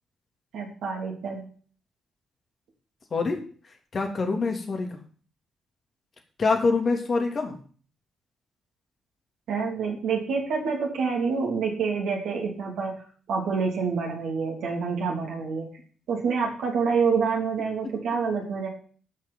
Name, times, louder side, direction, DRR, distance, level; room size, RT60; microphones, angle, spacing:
voice 1, 0.5-1.5 9.5-12.9 13.3-15.7 16.1-18.7, right 5 dB, 70° right, -1 dB, 3.3 m, -27 dB
voice 2, 3.1-3.4 3.9-4.9 6.4-7.6, left 4 dB, 45° left, 4 dB, 3.1 m, -25 dB
13.0 x 6.0 x 7.3 m, 0.44 s
hypercardioid pair, 40°, 0 cm